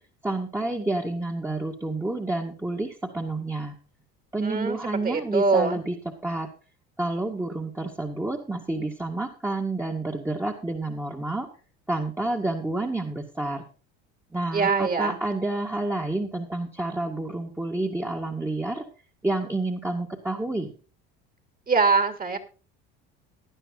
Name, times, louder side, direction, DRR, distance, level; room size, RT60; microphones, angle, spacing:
voice 1, 0.2-3.7 4.3-6.0 6.2-6.5 7.0-11.5 11.9-13.6 14.3-18.8 19.2-20.7, right 2 dB, 10° right, 0 dB, 2.1 m, -29 dB
voice 2, 4.4-4.8 5.0-5.8 14.5-15.2 21.7-22.4, right 4 dB, 30° right, 8 dB, 3.1 m, -23 dB
17.5 x 11.5 x 2.6 m, 0.36 s
supercardioid pair, 85°, 31 cm